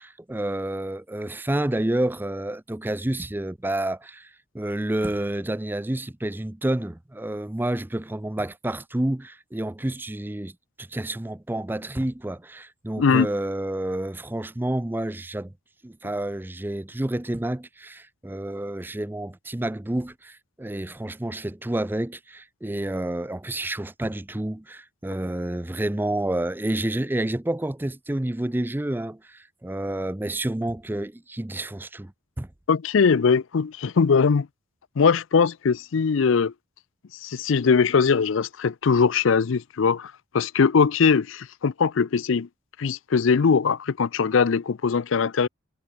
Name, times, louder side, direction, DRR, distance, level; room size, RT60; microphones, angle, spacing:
voice 1, 0.0-10.5 10.8-15.5 15.8-32.1 32.4-32.5, right 1 dB, 10° right, 0.4 m, -29 dB
voice 2, 32.7-34.5 35.0-36.5 37.2-42.5 42.8-45.5, left 5 dB, 65° left, 0.5 m, -21 dB
head